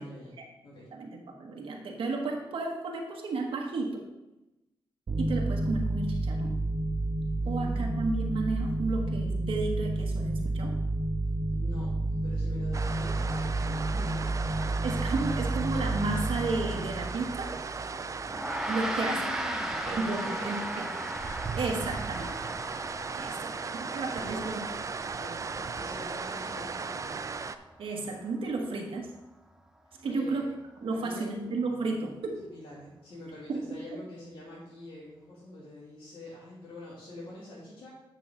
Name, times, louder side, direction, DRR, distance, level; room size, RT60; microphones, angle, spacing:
voice 1, 0.0-0.4 0.6-0.9 7.4-8.2 11.5-14.7 18.8-20.7 23.1-24.4 25.2-27.3 30.0-30.5 30.9-31.8 32.4-37.9, left 1 dB, 80° left, -7 dB, 2.8 m, -46 dB
voice 2, 0.9-4.0 5.2-6.5 7.5-10.7 14.8-17.5 18.7-19.2 19.9-20.6 21.6-22.3 23.1-24.6 27.8-29.1 30.0-30.5 30.8-32.4 33.5-33.6, right 3 dB, 80° right, 1 dB, 1.3 m, -33 dB
sound 1, 5.1-18.2, right 2 dB, 60° right, 1.3 m, -30 dB
sound 2, 12.7-27.6, right 5 dB, 35° right, 0.4 m, -37 dB
Gong, 18.3-27.9, equal, 5° right, 0.7 m, -38 dB
9.3 x 5.7 x 3.8 m, 0.97 s
cardioid pair, 100°, 9 cm